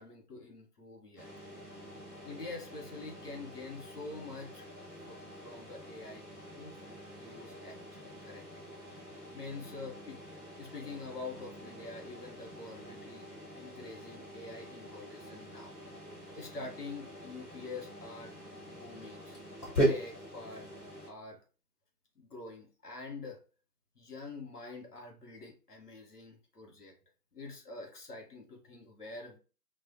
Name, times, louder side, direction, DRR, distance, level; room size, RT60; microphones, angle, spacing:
voice 1, 0.0-1.3 2.2-4.7 5.1-6.3 6.6-6.8 7.2-8.7 9.3-13.3 13.6-15.7 16.3-18.3 18.7-19.4 19.8-20.7 21.1-21.4 22.2-23.4 24.0-26.9 27.3-29.4, left 3 dB, 70° left, 2 dB, 1.0 m, -46 dB
sound 1, 1.2-21.1, right 1 dB, 20° left, 1.4 m, -41 dB
2.4 x 2.1 x 2.5 m, 0.35 s
figure-of-eight pair, 165°, 48 cm